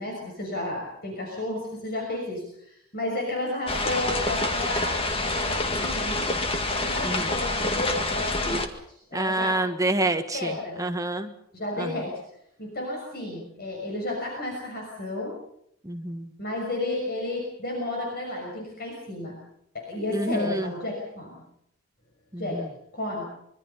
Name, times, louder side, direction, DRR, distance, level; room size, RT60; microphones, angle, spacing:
voice 1, 0.0-4.9 5.2-6.3 6.7-9.6 10.3-10.8 11.5-12.2 12.6-15.3 16.4-19.4 19.7-21.4 22.4-22.6 22.9-23.2, left 2 dB, 45° left, -1 dB, 6.2 m, -32 dB
sound 1, 3.7-8.7, left 2 dB, 25° left, 2.0 m, -27 dB
voice 2, 9.1-11.3 11.8-12.0 15.8-16.3 20.1-20.7 22.3-22.7, right 2 dB, 15° right, 6 dB, 1.4 m, -28 dB
25.5 x 23.5 x 5.7 m, 0.73 s
head